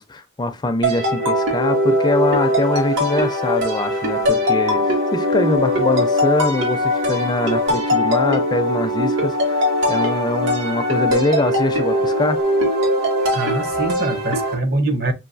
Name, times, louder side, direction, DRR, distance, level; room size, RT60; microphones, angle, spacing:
voice 1, 0.0-12.4, left 2 dB, 20° left, 0.4 m, -23 dB
sound 1, 0.8-14.5, left 1 dB, 90° right, 2.0 m, -20 dB
voice 2, 13.2-15.1, right 2 dB, 55° right, 0.9 m, -23 dB
5.5 x 2.6 x 2.5 m
head